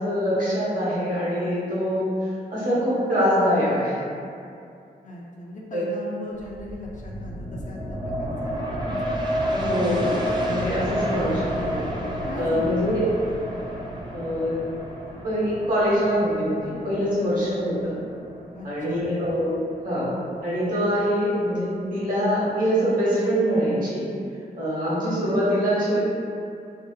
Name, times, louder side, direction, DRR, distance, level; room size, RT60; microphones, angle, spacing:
voice 1, 0.0-2.1 2.5-4.0 5.7-5.8 9.5-11.9 12.4-13.0 14.1-14.6 15.2-18.0 18.6-19.6 19.8-20.1 20.4-24.0 24.6-26.1, equal, 55° right, -9 dB, 1.0 m, -24 dB
voice 2, 5.0-9.1 12.3-12.8 18.5-19.1, left 2 dB, 50° left, -3 dB, 0.4 m, -38 dB
sound 1, 6.4-19.7 20.1-20.2, equal, 25° right, 0.3 m, -30 dB
2.6 x 2.0 x 2.3 m, 2.5 s
cardioid pair, 95°, 17 cm